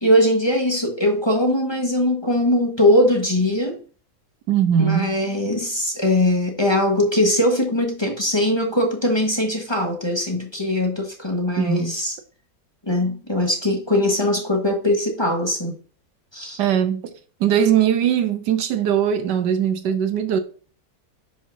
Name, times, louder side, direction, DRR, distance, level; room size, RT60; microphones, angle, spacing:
voice 1, 0.0-3.8 4.8-12.1 12.8-15.8 16.3-16.6, left 1 dB, 15° left, 1.4 m, -21 dB
voice 2, 4.5-5.2 11.6-11.9 16.6-17.1 17.4-20.4, right 9 dB, 90° right, 1.5 m, -20 dB
11.0 x 5.1 x 2.7 m
omnidirectional pair, 1.8 m